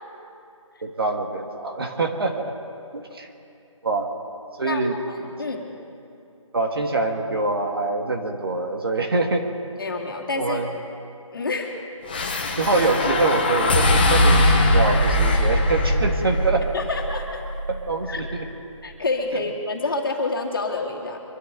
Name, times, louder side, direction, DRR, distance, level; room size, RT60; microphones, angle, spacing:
voice 1, 0.8-2.5 2.9-3.3 3.8-4.1 4.6-5.0 6.5-9.5 10.4-10.7 12.6-16.7 17.7-18.4 19.3-19.4, right 3 dB, 45° right, 3 dB, 1.7 m, -24 dB
voice 2, 4.6-5.7 9.8-10.6 11.3-11.7 16.7-17.4 18.1-18.2 18.8-21.2, left 3 dB, 40° left, -1 dB, 2.3 m, -28 dB
sound 1, 12.1-18.5, left 1 dB, 15° left, 0.9 m, -21 dB
25.0 x 13.0 x 3.8 m, 2.7 s
figure-of-eight pair, 175°, 17 cm